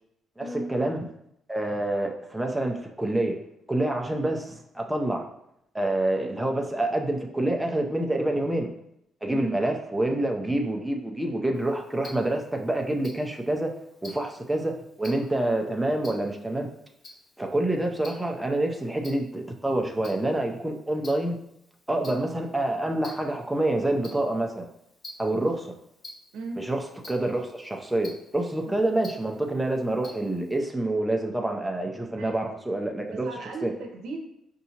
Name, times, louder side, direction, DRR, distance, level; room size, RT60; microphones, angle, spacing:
voice 1, 0.4-1.0 1.5-3.4 3.7-5.3 5.7-8.7 9.2-13.7 14.0-16.7 17.4-21.4 21.9-24.7 25.2-25.7 26.6-33.3 33.6-33.7, right 1 dB, 5° right, 2 dB, 0.5 m, -27 dB
Tick-tock, 11.5-30.6, left 2 dB, 50° left, 1.6 m, -51 dB
voice 2, 33.1-34.2, right 2 dB, 85° right, 2 dB, 0.7 m, -36 dB
5.4 x 2.8 x 2.8 m, 0.77 s
cardioid pair, 90°, 0 cm